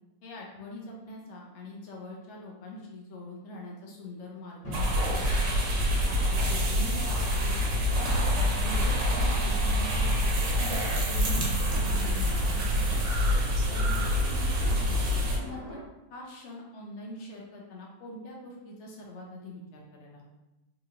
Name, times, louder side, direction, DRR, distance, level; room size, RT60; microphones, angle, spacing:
voice 1, 0.2-5.0 6.0-13.1 13.7-15.0 15.3-15.8 16.1-20.3, left 1 dB, 75° left, -2 dB, 0.6 m, -43 dB
sound 1, 4.6-10.5 11.3-15.8, left 1 dB, 25° left, 1.0 m, -43 dB
sound 2, 4.7-15.4, equal, 80° right, 1.5 m, -26 dB
4.2 x 2.5 x 2.7 m, 0.99 s
omnidirectional pair, 1.9 m